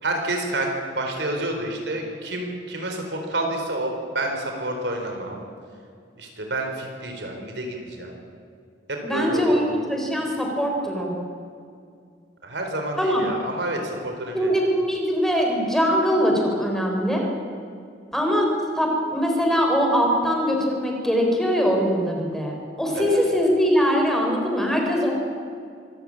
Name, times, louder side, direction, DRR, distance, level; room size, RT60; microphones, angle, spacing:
voice 1, 0.0-5.4 6.2-8.2 8.9-9.8 12.4-14.5 22.9-23.2, right 1 dB, 75° right, 3 dB, 4.3 m, -29 dB
voice 2, 9.0-11.2 13.0-13.3 14.3-17.3 18.1-25.1, equal, ahead, 0 dB, 4.1 m, -22 dB
25.0 x 14.5 x 8.8 m, 2.3 s
head